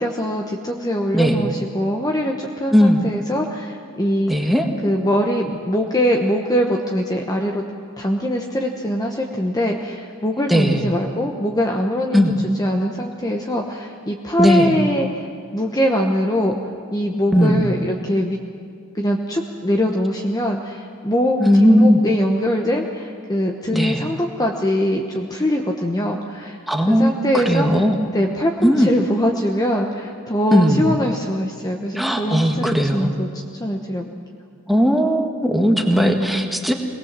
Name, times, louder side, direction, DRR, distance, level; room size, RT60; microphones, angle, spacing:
voice 1, 0.0-4.5 4.8-7.6 8.0-15.3 15.5-18.4 18.9-26.6 26.9-27.7 28.1-33.3 33.6-34.1, equal, 15° left, 1 dB, 1.1 m, -22 dB
voice 2, 2.7-3.0 4.3-4.7 10.5-10.9 12.1-12.3 14.4-14.7 17.3-17.7 21.4-22.0 23.7-24.0 26.7-28.0 28.6-28.9 30.5-30.8 31.9-33.1 34.7-36.7, equal, ahead, 3 dB, 1.6 m, -17 dB
22.0 x 19.0 x 7.5 m, 2.2 s
head